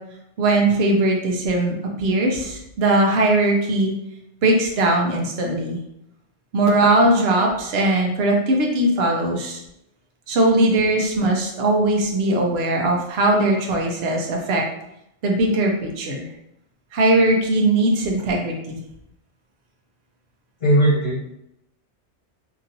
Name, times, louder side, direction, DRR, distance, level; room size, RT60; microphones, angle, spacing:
voice 1, 0.4-3.9 4.4-5.8 6.5-9.6 10.3-14.6 15.2-16.3 16.9-18.8, right 2 dB, 65° right, 1 dB, 0.9 m, -20 dB
voice 2, 20.6-21.4, right 1 dB, 60° left, -8 dB, 1.2 m, -18 dB
2.9 x 2.6 x 2.7 m, 0.81 s
omnidirectional pair, 1.2 m